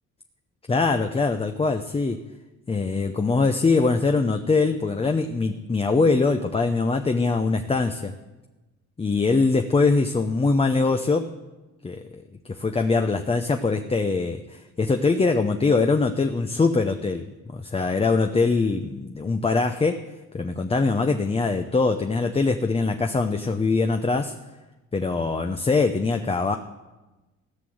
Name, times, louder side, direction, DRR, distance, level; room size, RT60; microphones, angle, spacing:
voice 1, 0.7-2.2 2.7-8.1 9.0-11.3 11.8-12.2 12.5-17.2 17.5-20.0 20.3-24.3 24.9-26.6, left 3 dB, 20° left, 6 dB, 0.7 m, -22 dB
16.0 x 6.0 x 7.9 m, 1.1 s
cardioid pair, 90°, 30 cm